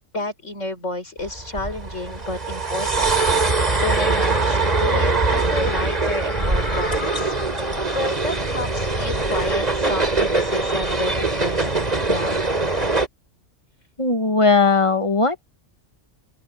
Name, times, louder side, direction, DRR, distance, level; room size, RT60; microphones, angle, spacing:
voice 1, 0.1-3.1 3.4-7.3 7.9-11.7 12.1-12.4, left 1 dB, 70° left, 6.3 m, -30 dB
sound 1, 1.2-13.1, right 3 dB, 30° right, 3.3 m, -22 dB
voice 2, 14.0-15.5, left 4 dB, 25° left, 1.3 m, -18 dB
open air
omnidirectional pair, 1.3 m